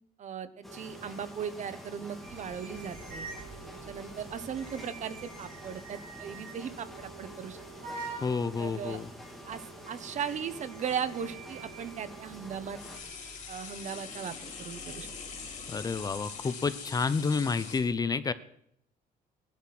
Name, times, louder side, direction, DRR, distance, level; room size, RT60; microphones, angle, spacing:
voice 1, 0.2-3.3 3.9-7.6 7.8-7.9 8.6-9.0 9.4-12.8 13.5-15.1, right 7 dB, 50° right, 12 dB, 1.3 m, -38 dB
sound 1, 0.6-13.0, right 1 dB, ahead, 3.2 m, -47 dB
sound 2, 0.9-9.1 10.2-10.3 11.1-17.8, left 6 dB, 50° left, 4.4 m, -47 dB
sound 3, 2.2-17.1, right 3 dB, 75° right, 8.0 m, -49 dB
voice 2, 8.2-9.1 15.7-18.3, left 4 dB, 25° left, 13 dB, 0.7 m, -30 dB
19.5 x 12.0 x 6.1 m, 0.73 s
cardioid pair, 155°, 16 cm